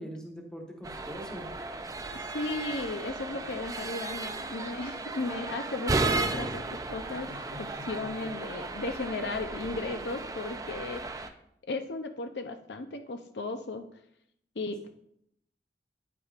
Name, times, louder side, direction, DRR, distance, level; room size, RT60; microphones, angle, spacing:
voice 1, 0.0-1.5 7.3-8.3, equal, 5° left, 0 dB, 1.2 m, -43 dB
sound 1, 0.8-11.3, right 3 dB, 20° right, 0.4 m, -35 dB
voice 2, 2.1-7.3 7.6-11.3 11.7-13.9 14.6-14.9, left 3 dB, 75° left, 7 dB, 0.6 m, -35 dB
9.5 x 8.4 x 2.5 m, 0.74 s
head